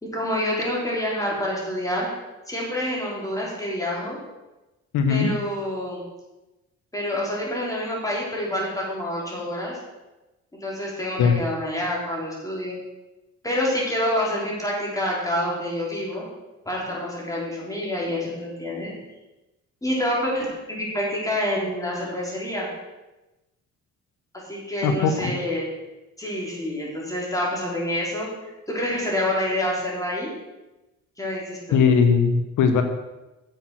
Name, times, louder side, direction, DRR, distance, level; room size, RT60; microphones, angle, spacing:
voice 1, 0.0-2.1 2.5-4.2 5.1-6.0 6.9-9.8 10.5-12.8 13.4-16.3 16.6-18.9 19.8-22.7 24.3-25.7 26.2-30.3 31.2-31.8, left 1 dB, 10° left, -4 dB, 4.8 m, -27 dB
voice 2, 4.9-5.3 11.2-11.4 24.8-25.3 31.7-32.8, left 6 dB, 85° left, 7 dB, 1.1 m, -19 dB
10.0 x 7.6 x 6.1 m, 1.0 s
cardioid pair, 90°, 30 cm